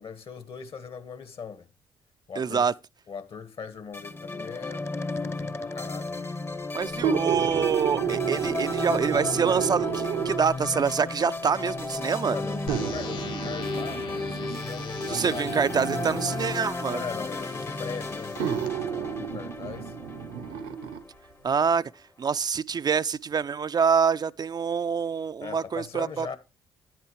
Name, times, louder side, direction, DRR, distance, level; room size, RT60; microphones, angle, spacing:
voice 1, 0.0-1.7 2.3-2.7 3.1-4.9 5.2-6.2 12.3-15.5 16.9-19.9 25.4-26.4, left 6 dB, 55° left, 1.4 m, -39 dB
voice 2, 2.4-2.7 6.7-12.4 15.1-17.0 21.4-21.8 22.2-26.4, right 6 dB, 40° right, 0.4 m, -26 dB
sound 1, 3.9-21.3, left 3 dB, 25° left, 0.7 m, -34 dB
sound 2, 6.9-10.6 11.5-11.6 12.7-16.6 17.6-17.7 18.4-21.0 21.5-21.6, right 8 dB, 85° right, 0.8 m, -31 dB
sound 3, 12.7-18.7, left 6 dB, 75° left, 3.4 m, -44 dB
9.6 x 9.1 x 3.0 m
hypercardioid pair, 45°, 11 cm